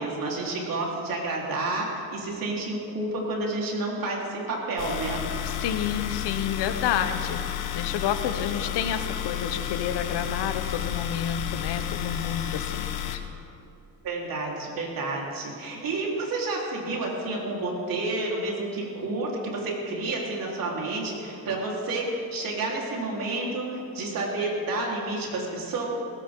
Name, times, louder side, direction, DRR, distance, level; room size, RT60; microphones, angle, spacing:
voice 1, 0.0-5.2 14.0-25.8, right 2 dB, 55° right, -3 dB, 4.2 m, -30 dB
sound 1, 4.8-13.2, left 11 dB, 65° left, 1.4 m, -31 dB
voice 2, 5.4-13.2, left 8 dB, 80° left, 8 dB, 1.3 m, -30 dB
21.0 x 17.5 x 3.9 m, 2.8 s
cardioid pair, 135°, 40 cm